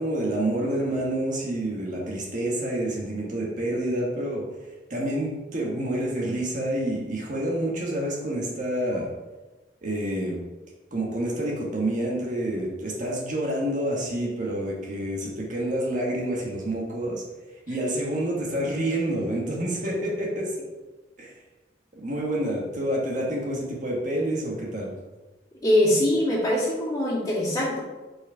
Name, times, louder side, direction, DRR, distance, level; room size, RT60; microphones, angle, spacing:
voice 1, 0.0-4.4 4.9-9.1 9.8-10.4 10.9-17.2 17.7-20.5 21.2-21.3 21.9-24.9, right 1 dB, 45° right, -3 dB, 1.3 m, -28 dB
voice 2, 25.6-27.8, left 1 dB, 20° left, -8 dB, 2.3 m, -22 dB
5.3 x 4.9 x 4.7 m, 1.2 s
head